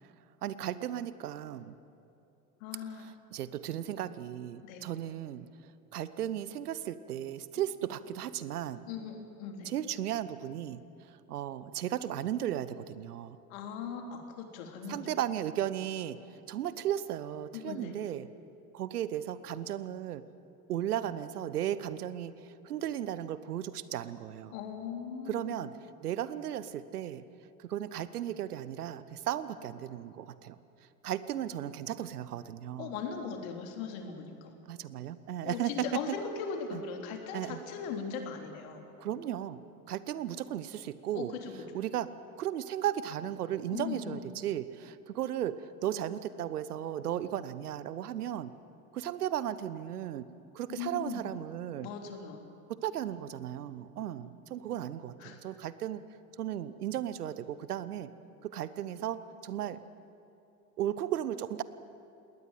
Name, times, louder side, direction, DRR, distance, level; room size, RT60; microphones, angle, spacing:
voice 1, 0.4-1.7 2.9-5.5 5.9-8.8 9.6-10.8 11.0-13.4 14.9-18.3 18.7-20.2 20.7-24.5 25.3-25.7 26.0-27.2 27.6-30.6 31.0-32.9 34.7-36.0 36.7-36.8 37.3-37.6 39.0-39.6 39.9-41.3 41.7-42.1 42.4-48.5 48.9-50.2 50.5-51.9 52.8-56.0 56.4-58.1 58.4-59.8 60.8-61.6, right 11 dB, 75° right, 15 dB, 1.1 m, -35 dB
voice 2, 2.6-3.1 4.6-4.8 8.9-9.7 13.5-15.1 17.5-17.9 24.5-25.5 32.8-34.5 35.4-38.8 41.1-41.5 43.7-44.3 50.7-51.2 51.8-52.4 55.2-55.4, left 6 dB, 60° left, 4 dB, 3.4 m, -39 dB
20.5 x 18.5 x 9.3 m, 2.8 s
figure-of-eight pair, 75°, 46 cm